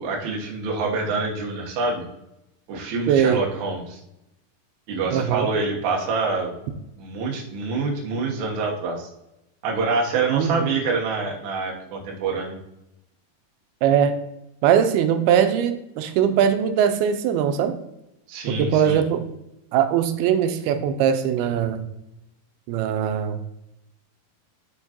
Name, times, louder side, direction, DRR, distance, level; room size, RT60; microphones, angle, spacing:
voice 1, 0.0-2.0 2.7-4.0 4.9-6.5 7.0-9.1 9.6-12.6 18.3-19.0, right 4 dB, 65° right, -1 dB, 2.1 m, -26 dB
voice 2, 3.1-3.4 5.1-5.5 10.3-10.7 13.8-14.1 14.6-17.8 18.6-19.2 19.7-21.9 22.7-23.4, right 8 dB, 90° right, 8 dB, 2.5 m, -21 dB
11.0 x 3.8 x 2.9 m, 0.86 s
omnidirectional pair, 4.3 m